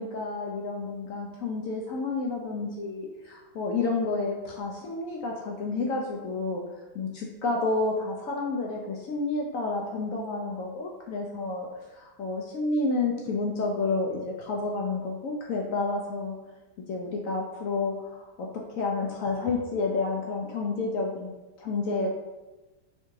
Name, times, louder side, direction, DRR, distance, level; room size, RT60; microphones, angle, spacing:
voice 1, 0.0-6.6 6.9-16.3 16.9-22.1, left 3 dB, 70° left, 0 dB, 0.8 m, -30 dB
4.4 x 3.5 x 3.1 m, 1.1 s
omnidirectional pair, 1.9 m